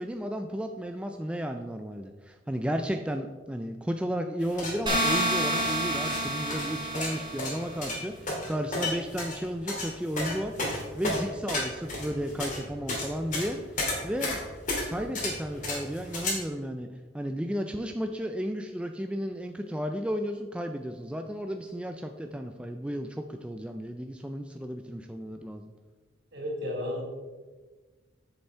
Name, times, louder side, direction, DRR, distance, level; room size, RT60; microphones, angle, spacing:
voice 1, 0.0-10.5 10.9-14.4 14.9-16.9 17.1-25.7, equal, 5° right, 5 dB, 0.3 m, -33 dB
Garden Shovel, 4.4-16.3, left 2 dB, 40° left, 2.5 m, -33 dB
sound 1, 4.9-7.7, right 1 dB, 25° right, 2.1 m, -29 dB
voice 2, 26.3-27.0, left 1 dB, 60° right, -1 dB, 2.7 m, -32 dB
8.1 x 6.8 x 4.4 m, 1.3 s
head